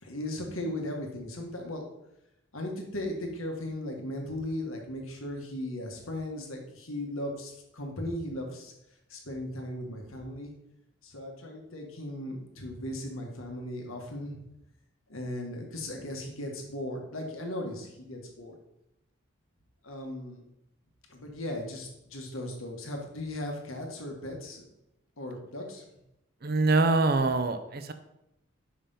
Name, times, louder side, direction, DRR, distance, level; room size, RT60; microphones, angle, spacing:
voice 1, 0.0-1.9 2.5-8.7 9.1-10.5 11.0-14.4 15.1-18.5 19.8-20.4 21.1-24.6 25.2-25.8, left 1 dB, 85° left, 2 dB, 1.6 m, -37 dB
voice 2, 26.4-27.9, right 3 dB, 50° right, 9 dB, 0.6 m, -24 dB
5.6 x 5.6 x 5.6 m, 0.84 s
head